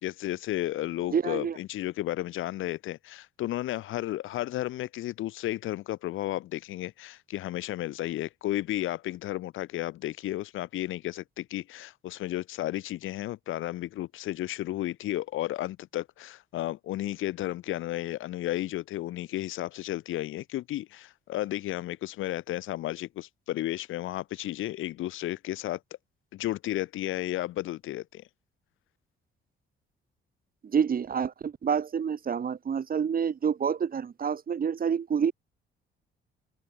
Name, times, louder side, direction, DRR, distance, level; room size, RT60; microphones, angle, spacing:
voice 1, 0.0-25.8 26.3-28.2, left 15 dB, 85° left, 3.7 m, -33 dB
voice 2, 1.1-1.6 30.6-35.3, right 7 dB, 45° right, 3.0 m, -28 dB
open air
cardioid pair, 90°, 20 cm